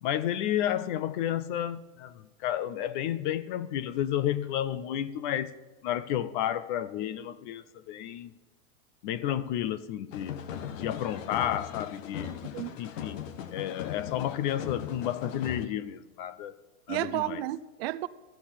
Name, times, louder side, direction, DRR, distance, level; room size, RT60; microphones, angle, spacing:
voice 1, 0.0-5.5 5.8-8.3 9.0-10.4 10.7-12.4 12.8-16.6 16.9-17.4, left 11 dB, 40° left, 0.4 m, -31 dB
sound 1, 10.1-15.7, left 9 dB, 75° left, 1.2 m, -39 dB
voice 2, 12.2-12.8 16.9-18.1, right 15 dB, 50° right, 0.5 m, -33 dB
14.0 x 10.0 x 5.8 m
supercardioid pair, 150°, 39 cm